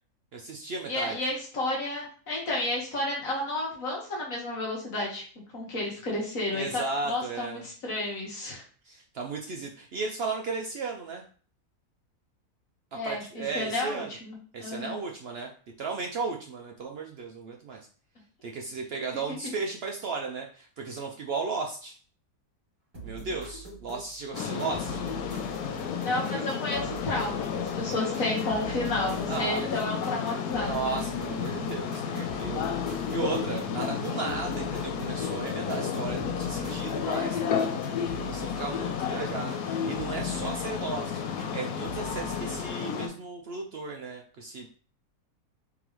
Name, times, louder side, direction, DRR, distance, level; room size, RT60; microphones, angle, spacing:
voice 1, 0.3-1.2 6.5-7.6 8.8-11.2 12.9-14.1 14.5-15.5 15.8-17.8 18.4-22.0 23.0-25.0 26.1-26.4 29.3-29.9 30.6-44.7, right 4 dB, 75° right, 1 dB, 0.5 m, -35 dB
voice 2, 0.9-5.2 5.5-8.6 12.9-14.9 26.0-31.0, left 2 dB, 65° left, -3 dB, 1.8 m, -32 dB
sound 1, 22.9-39.6 39.9-41.5 41.8-42.7, right 3 dB, 20° right, 2.1 m, -45 dB
sound 2, 24.3-43.1, left 7 dB, 90° left, 1.1 m, -32 dB
3.8 x 3.7 x 3.0 m, 0.42 s
omnidirectional pair, 1.6 m